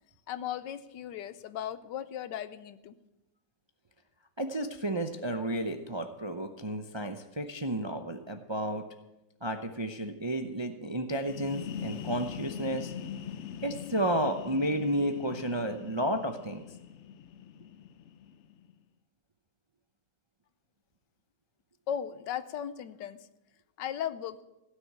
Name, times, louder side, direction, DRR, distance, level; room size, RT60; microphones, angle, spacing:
voice 1, 0.3-2.9 21.9-23.2 23.8-24.4, left 9 dB, 90° left, 14 dB, 1.4 m, -36 dB
voice 2, 4.4-8.8 9.4-12.9 13.6-16.6, right 1 dB, 40° right, 6 dB, 0.4 m, -32 dB
sound 1, 11.1-18.7, left 8 dB, 65° left, 0.7 m, -42 dB
16.5 x 6.6 x 9.4 m, 0.98 s
omnidirectional pair, 1.9 m